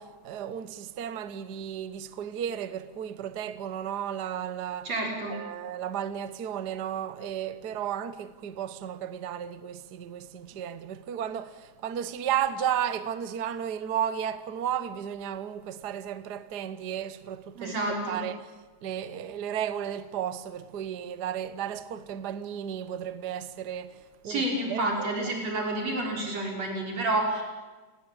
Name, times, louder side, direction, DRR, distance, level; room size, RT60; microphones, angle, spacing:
voice 1, 0.0-4.9 5.3-17.8 18.1-18.4 18.8-25.1, right 9 dB, 75° right, 0.9 m, -34 dB
voice 2, 4.9-5.4 17.6-18.2 24.3-27.4, right 2 dB, 55° right, 6.9 m, -29 dB
29.5 x 19.0 x 8.8 m
omnidirectional pair, 3.5 m